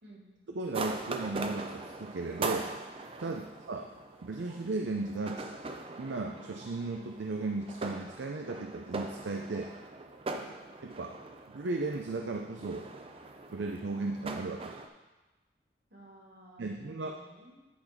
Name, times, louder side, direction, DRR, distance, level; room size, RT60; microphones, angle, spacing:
voice 1, 0.5-2.7 3.2-3.4 3.7-3.9 4.2-5.5 6.0-9.7 10.8-11.2 11.5-12.9 13.5-14.8 16.6-17.2, right 3 dB, 85° right, 3 dB, 0.5 m, -35 dB
sound 1, 0.7-14.9, right 3 dB, 30° right, 0.5 m, -41 dB
voice 2, 15.9-17.7, right 1 dB, 65° right, -4 dB, 2.5 m, -54 dB
10.0 x 4.0 x 5.1 m, 1.1 s
head